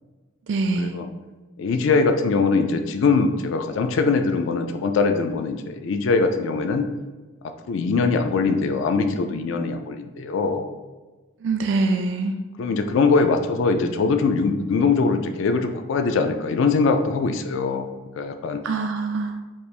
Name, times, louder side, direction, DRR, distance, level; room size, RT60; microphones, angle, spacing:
voice 1, 0.5-1.0 11.4-12.4 18.6-19.4, right 3 dB, 70° right, 5 dB, 0.4 m, -24 dB
voice 2, 1.6-6.9 7.7-10.7 12.6-17.9 18.2-18.6, left 4 dB, 75° left, 7 dB, 0.3 m, -22 dB
4.3 x 3.3 x 2.4 m, 1.2 s
head